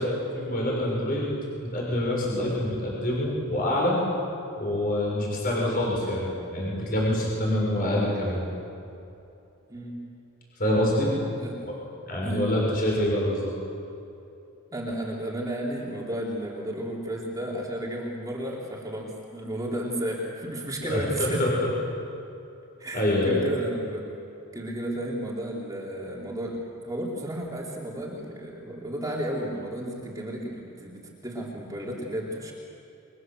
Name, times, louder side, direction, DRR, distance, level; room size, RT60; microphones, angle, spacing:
voice 1, 0.0-1.3 1.6-4.0 4.6-8.4 10.6-11.1 11.6-11.8 12.1-13.5 20.8-21.7 22.9-23.4, left 1 dB, 40° left, -3 dB, 6.8 m, -26 dB
voice 2, 12.2-12.5 14.7-21.5 22.8-24.1 24.5-32.5, right 1 dB, 15° right, -3 dB, 3.9 m, -33 dB
29.5 x 24.0 x 7.9 m, 2.8 s
head